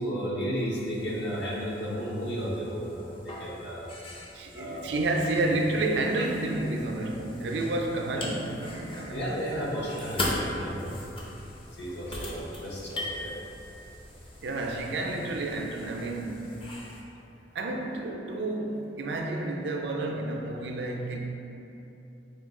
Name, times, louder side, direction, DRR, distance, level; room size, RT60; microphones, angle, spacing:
voice 1, 0.0-4.0 4.5-5.0 8.1-8.3 9.1-11.0 11.7-13.3, equal, 70° left, -5 dB, 0.8 m, -33 dB
sound 1, 0.8-17.0, left 1 dB, 30° left, 0.5 m, -40 dB
voice 2, 4.3-9.4 14.4-16.6 17.5-21.2, right 2 dB, 65° right, 1 dB, 0.4 m, -30 dB
5.0 x 2.3 x 3.6 m, 2.9 s
head